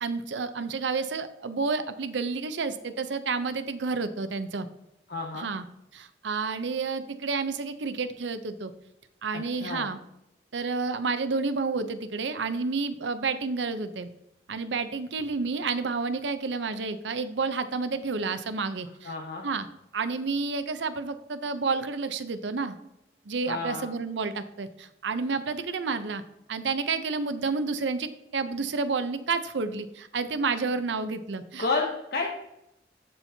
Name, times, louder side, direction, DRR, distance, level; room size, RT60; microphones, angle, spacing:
voice 1, 0.0-4.7 5.3-5.6 5.9-8.7 9.2-10.0 10.5-14.1 14.5-19.1 19.4-19.7 19.9-22.8 23.3-26.2 26.5-31.7, right 4 dB, 85° right, 11 dB, 0.6 m, -30 dB
voice 2, 5.1-5.5 9.3-9.9 19.0-19.4 23.5-23.9 31.6-32.3, left 3 dB, 60° left, 0 dB, 0.8 m, -31 dB
13.0 x 4.4 x 2.7 m, 0.85 s
head